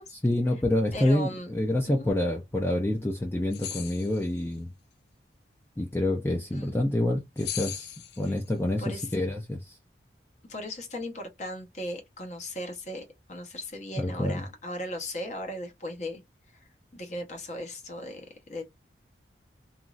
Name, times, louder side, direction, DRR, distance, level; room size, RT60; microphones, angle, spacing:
voice 1, 0.2-4.7 5.8-9.8 14.0-14.4, left 1 dB, 15° left, 0.5 m, -27 dB
voice 2, 0.9-1.5 1.9-2.1 6.5-6.9 8.3-8.4 8.8-9.2 10.5-16.2 16.5-18.6, left 1 dB, 40° left, 0.9 m, -37 dB
sound 1, 3.5-4.4 7.4-8.5, left 10 dB, 70° left, 0.5 m, -38 dB
3.0 x 2.6 x 2.4 m
head